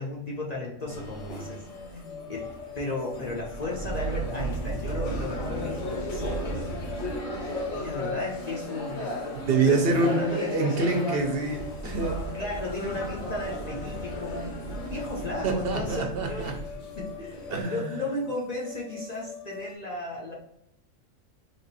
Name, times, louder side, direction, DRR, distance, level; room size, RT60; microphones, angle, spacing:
voice 1, 0.0-1.6 2.3-6.7 7.7-9.3 9.7-10.9 12.3-16.5 16.9-17.4 17.6-20.3, left 2 dB, 45° left, -4 dB, 0.6 m, -35 dB
sound 1, 0.9-17.6, right 1 dB, 90° left, 1.4 m, -35 dB
sound 2, 1.2-19.7, left 6 dB, 75° left, 1.1 m, -43 dB
voice 2, 9.5-12.2 15.4-16.5 17.5-17.9, right 3 dB, 55° right, 2 dB, 0.8 m, -26 dB
3.4 x 2.4 x 4.0 m, 0.79 s
omnidirectional pair, 1.4 m